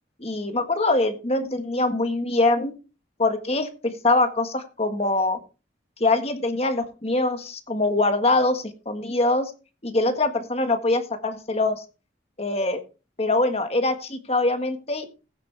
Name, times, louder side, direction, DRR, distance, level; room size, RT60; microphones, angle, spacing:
voice 1, 0.2-2.7 3.2-5.4 6.0-9.5 9.8-11.8 12.4-12.8 13.2-15.1, left 2 dB, 35° left, 7 dB, 1.5 m, -23 dB
15.5 x 8.3 x 3.3 m, 0.32 s
head